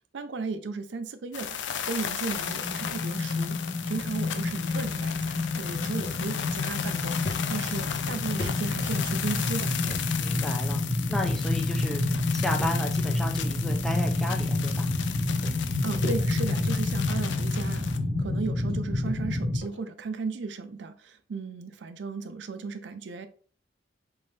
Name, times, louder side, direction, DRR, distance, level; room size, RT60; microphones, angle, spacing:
voice 1, 0.1-3.6 3.9-7.2 7.5-10.0 15.8-17.8 18.2-23.3, right 4 dB, 70° right, 0.4 m, -35 dB
sound 1, 1.3-18.0, left 8 dB, 70° left, 0.5 m, -35 dB
sound 2, 2.4-19.6, left 2 dB, 25° left, 1.3 m, -29 dB
sound 3, 6.0-6.2 6.7-6.8 7.2-9.3 9.8-10.1 10.3-10.5 11.2-11.7 12.6-13.1 14.0-14.1 15.1-15.2 15.4-16.6 17.0-17.3 18.1-18.2 18.7-18.8 19.1-19.2 19.6-19.8, left 1 dB, 55° left, 0.9 m, -39 dB
voice 2, 10.2-10.8 11.1-12.0 12.3-14.9, left 1 dB, ahead, 0.4 m, -33 dB
4.3 x 3.7 x 3.2 m
head